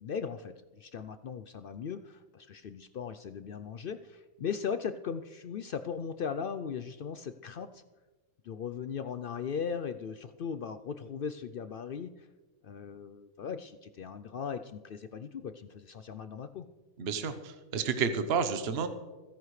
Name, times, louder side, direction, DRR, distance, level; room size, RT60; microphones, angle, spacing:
voice 1, 0.0-7.8 8.4-12.3 12.6-16.6, left 6 dB, 65° left, 11 dB, 0.5 m, -38 dB
voice 2, 17.0-18.9, right 5 dB, 50° right, 8 dB, 1.1 m, -30 dB
28.0 x 10.5 x 3.2 m, 1.2 s
omnidirectional pair, 1.5 m